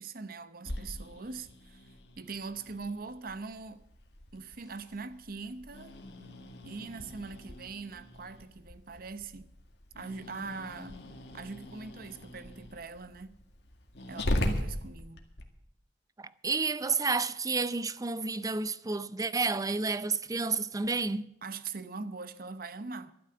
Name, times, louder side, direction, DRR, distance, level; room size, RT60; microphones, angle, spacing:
voice 1, 0.0-3.8 4.3-6.0 6.6-9.5 9.9-11.0 11.3-13.4 14.1-15.2 21.4-23.1, right 4 dB, 55° right, 0.9 m, -42 dB
Growling, 0.6-15.4, left 1 dB, 70° left, 2.0 m, -40 dB
voice 2, 16.2-21.3, right 4 dB, 20° right, 0.5 m, -30 dB
13.0 x 11.5 x 6.8 m
head